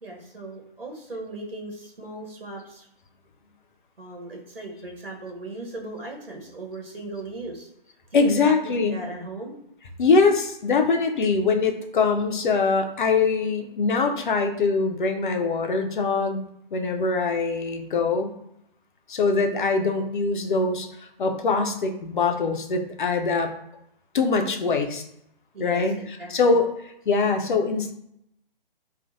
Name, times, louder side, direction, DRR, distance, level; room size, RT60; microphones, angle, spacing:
voice 1, 0.0-2.9 4.0-7.7 8.1-9.5 25.5-26.6, right 2 dB, 75° right, 0 dB, 1.1 m, -38 dB
voice 2, 8.1-9.0 10.0-16.4 16.7-18.3 19.1-20.9 21.2-23.5 24.1-25.0 25.6-26.7 27.1-27.9, left 4 dB, 55° left, 5 dB, 0.6 m, -23 dB
4.5 x 2.4 x 2.6 m, 0.78 s
figure-of-eight pair, 135°, 29 cm